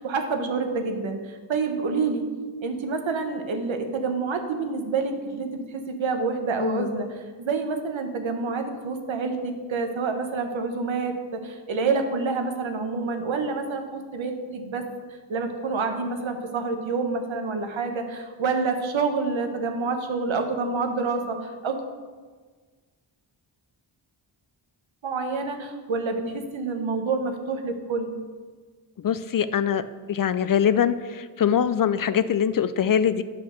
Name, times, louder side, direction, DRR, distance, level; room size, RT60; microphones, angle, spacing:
voice 1, 0.0-2.2 2.6-14.8 15.3-21.8 25.0-26.2 26.5-28.1, right 4 dB, 80° right, 5 dB, 1.1 m, -28 dB
voice 2, 6.6-7.0 29.0-29.8 30.1-33.2, left 8 dB, 50° left, 13 dB, 0.4 m, -23 dB
7.9 x 5.7 x 6.5 m, 1.5 s
cardioid pair, 75°, 46 cm